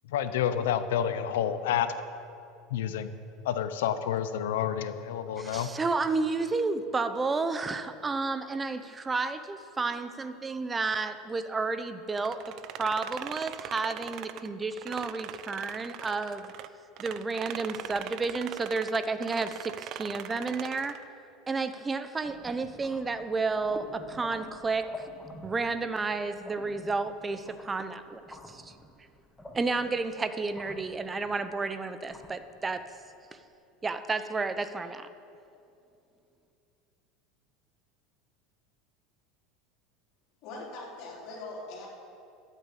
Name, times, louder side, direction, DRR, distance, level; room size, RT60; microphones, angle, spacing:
voice 1, 0.1-1.9 2.7-3.1 3.4-5.7, left 9 dB, 85° left, 11 dB, 0.9 m, -29 dB
voice 2, 5.4-16.5 17.0-21.0 21.5-25.1 25.4-28.7 29.5-32.9 33.8-35.1, right 3 dB, 15° right, 11 dB, 0.8 m, -31 dB
sound 1, 12.2-16.7 17.0-21.0, right 12 dB, 50° right, 0.6 m, -41 dB
sound 2, 22.2-33.4, left 1 dB, 5° left, 1.4 m, -48 dB
voice 3, 40.4-41.9, left 2 dB, 55° left, -3 dB, 4.0 m, -41 dB
13.0 x 8.4 x 8.5 m, 2.7 s
supercardioid pair, 125°, 0 cm